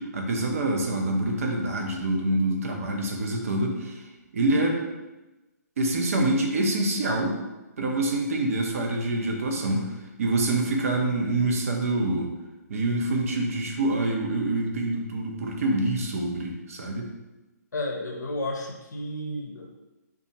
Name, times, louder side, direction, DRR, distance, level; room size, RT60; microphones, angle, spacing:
voice 1, 0.0-4.0 4.3-4.8 5.8-7.4 7.8-12.3 12.7-17.1, right 2 dB, 50° right, 1 dB, 0.7 m, -26 dB
voice 2, 17.7-19.7, left 1 dB, 80° left, 1 dB, 0.6 m, -32 dB
2.8 x 2.4 x 4.0 m, 1.1 s
figure-of-eight pair, 145°, 9 cm